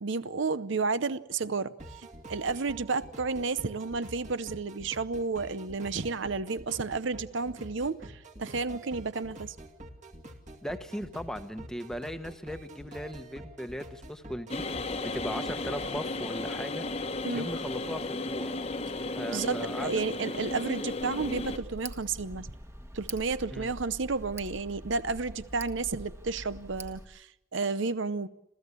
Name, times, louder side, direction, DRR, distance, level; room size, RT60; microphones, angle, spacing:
voice 1, 0.0-9.6 17.2-17.5 19.3-22.5 22.9-28.3, right 4 dB, 65° right, 0.7 m, -32 dB
sound 1, 1.8-16.0, right 1 dB, 35° right, 2.2 m, -47 dB
voice 2, 10.6-18.5 19.2-19.9 23.5-23.7, equal, 5° left, 1.1 m, -38 dB
sound 2, 14.5-21.6, left 2 dB, 30° left, 1.1 m, -34 dB
Tick, 21.0-27.0, right 1 dB, 15° right, 1.4 m, -44 dB
27.5 x 15.5 x 8.3 m
head